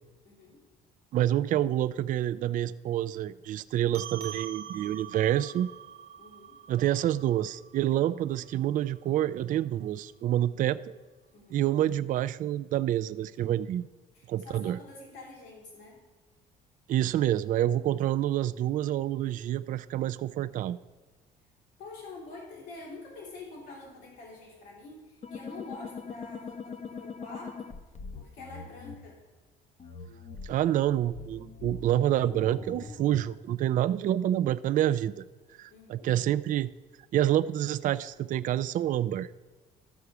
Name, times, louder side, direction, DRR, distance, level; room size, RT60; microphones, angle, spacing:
voice 1, 0.2-0.6 6.2-6.6 11.3-11.6 14.1-16.0 21.8-27.7 28.1-29.2 35.7-36.1, left 3 dB, 90° left, -3 dB, 3.1 m, -46 dB
voice 2, 1.1-5.7 6.7-11.0 11.5-13.9 14.3-14.8 16.9-20.8 30.4-35.2 35.6-36.7 37.1-39.3, right 12 dB, 50° right, 12 dB, 0.4 m, -27 dB
sound 1, 3.9-8.7, right 8 dB, 75° right, 1.0 m, -44 dB
sound 2, 25.2-29.0 29.8-33.4, left 4 dB, 40° left, 0.8 m, -42 dB
13.0 x 4.7 x 6.8 m, 1.3 s
cardioid pair, 110°, 17 cm